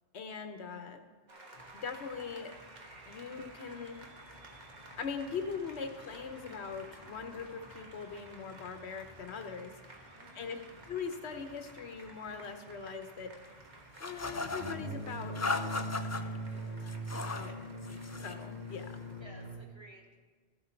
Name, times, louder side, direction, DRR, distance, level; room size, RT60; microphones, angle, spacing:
voice 1, 0.1-1.0 1.7-2.5 3.0-4.0 5.0-10.0 10.3-10.6 10.9-13.3 14.0-16.9 17.2-17.5 18.2-19.0, left 5 dB, 85° left, 7 dB, 1.2 m, -41 dB
Applause, 1.3-19.6, right 2 dB, 45° right, 1.4 m, -54 dB
sound 1, 1.5-19.6, right 1 dB, 45° left, 1.3 m, -45 dB
voice 2, 10.2-10.6 17.1-17.6 19.2-20.2, right 1 dB, 25° right, -1 dB, 1.7 m, -55 dB
sound 2, 14.0-14.8 15.3-16.2 16.9-17.5 17.8-18.4, left 3 dB, 30° left, 0.3 m, -36 dB
14.0 x 7.9 x 4.5 m, 1.5 s
omnidirectional pair, 1.1 m